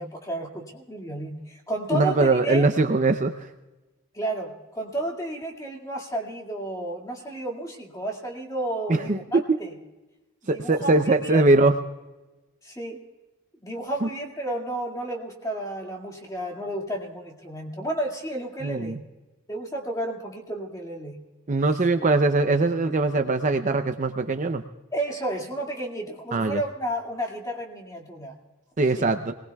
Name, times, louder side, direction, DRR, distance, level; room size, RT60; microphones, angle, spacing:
voice 1, 0.0-2.7 4.1-9.7 10.5-11.4 12.6-13.0 13.6-19.0 19.5-21.2 24.9-28.3 29.0-29.1, right 1 dB, 15° left, 0 dB, 2.1 m, -32 dB
voice 2, 1.9-3.5 8.9-9.6 10.5-11.8 14.0-14.1 18.6-19.0 21.5-24.6 26.3-26.6 28.8-29.3, right 3 dB, 35° right, 7 dB, 0.6 m, -21 dB
25.5 x 19.5 x 2.3 m, 1.1 s
head